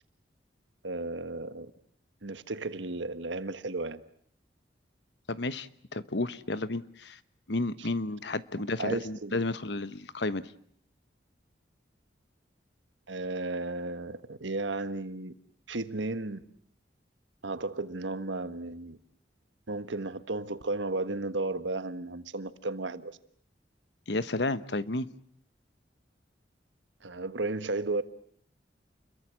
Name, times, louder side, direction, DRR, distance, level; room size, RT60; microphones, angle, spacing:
voice 1, 0.8-1.7 2.2-4.0 7.8-7.9 8.8-9.4 13.1-15.3 15.7-16.4 17.4-19.0 19.7-23.2 27.0-28.0, right 2 dB, 85° right, 1.5 m, -34 dB
voice 2, 5.3-7.2 7.5-10.5 24.1-25.1, left 2 dB, 70° left, 1.2 m, -32 dB
29.5 x 22.5 x 7.7 m
head